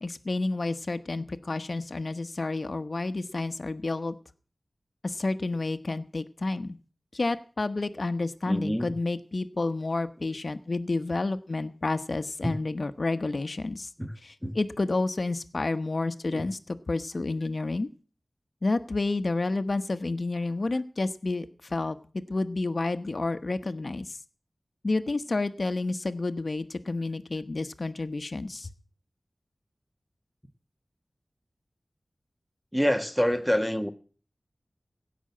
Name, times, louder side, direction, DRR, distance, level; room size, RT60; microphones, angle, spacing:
voice 1, 0.0-4.1 5.0-6.8 7.1-13.9 14.2-17.9 18.6-24.2 24.8-28.7, left 3 dB, 65° left, 10 dB, 1.1 m, -30 dB
voice 2, 8.5-8.9 12.4-12.5 14.0-14.1 14.4-14.5 16.3-16.5 32.7-33.9, equal, ahead, 6 dB, 1.7 m, -26 dB
16.5 x 6.2 x 8.5 m, 0.41 s
wide cardioid pair, 40°, 0 cm